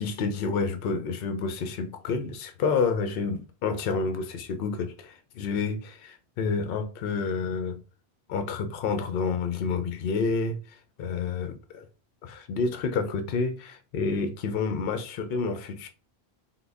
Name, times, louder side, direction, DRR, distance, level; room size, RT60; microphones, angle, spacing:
voice 1, 0.0-7.8 8.3-11.9 12.2-15.9, left 4 dB, 65° left, 0.7 m, -29 dB
3.7 x 2.1 x 3.3 m
omnidirectional pair, 1.1 m